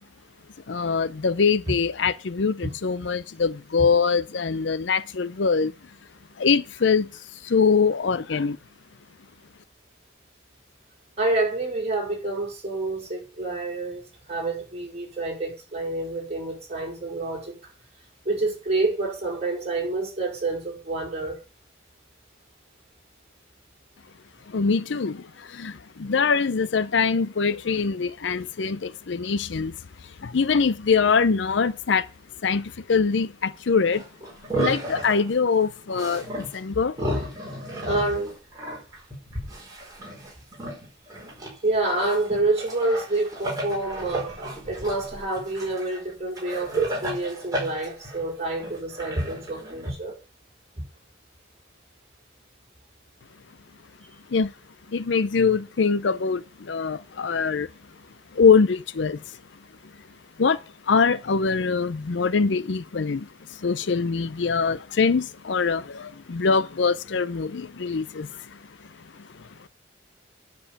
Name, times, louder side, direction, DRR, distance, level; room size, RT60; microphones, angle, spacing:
voice 1, 0.7-5.7 6.4-7.1 7.4-8.6 24.5-29.7 30.2-32.1 32.4-34.0 34.6-37.0 54.3-54.5 54.9-57.7 58.3-59.4 60.4-60.6 60.9-68.6 69.4-69.5, left 5 dB, 65° left, 0.5 m, -23 dB
voice 2, 11.2-17.6 18.2-21.4 37.8-38.4 41.6-50.2, right 2 dB, 35° right, 5.1 m, -28 dB
sound 1, 33.9-35.3 35.9-36.6 36.9-41.5 41.8-49.9, right 1 dB, 20° right, 5.0 m, -33 dB
10.0 x 5.4 x 8.4 m
head